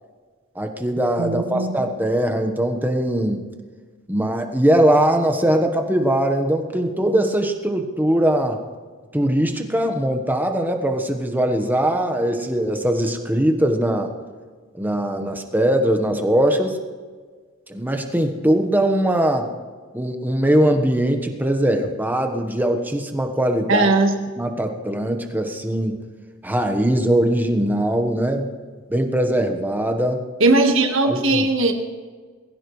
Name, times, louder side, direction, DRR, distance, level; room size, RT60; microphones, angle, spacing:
voice 1, 0.5-3.4 4.1-8.6 9.1-14.1 14.7-16.8 17.7-19.5 19.9-23.9 24.4-26.0 26.4-28.5 28.9-30.2 31.0-31.5, right 1 dB, 10° right, 4 dB, 1.3 m, -21 dB
voice 2, 1.2-1.7 23.7-24.1 30.4-31.7, right 2 dB, 60° right, 4 dB, 1.6 m, -18 dB
20.5 x 16.0 x 3.3 m, 1.5 s
head